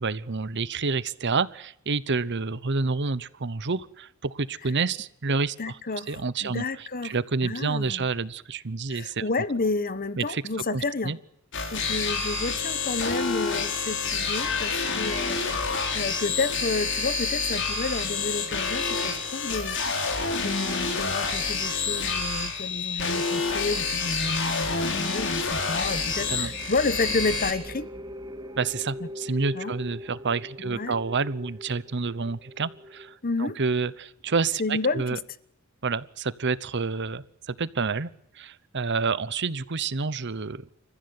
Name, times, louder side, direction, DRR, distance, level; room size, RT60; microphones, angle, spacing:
voice 1, 0.0-5.8 6.1-9.2 10.2-10.4 10.7-11.2 26.3-26.5 28.6-35.2 35.8-40.7, right 4 dB, 55° right, 0.9 m, -29 dB
voice 2, 5.6-7.1 7.4-8.0 8.9-11.1 11.7-19.8 20.3-27.9 29.5-29.7 30.6-31.0 33.2-33.6 34.6-35.2, left 3 dB, 40° left, 1.1 m, -30 dB
sound 1, 11.5-27.5, left 4 dB, 55° left, 4.1 m, -28 dB
sound 2, 22.8-33.2, equal, 20° right, 2.0 m, -43 dB
28.0 x 15.0 x 9.6 m
head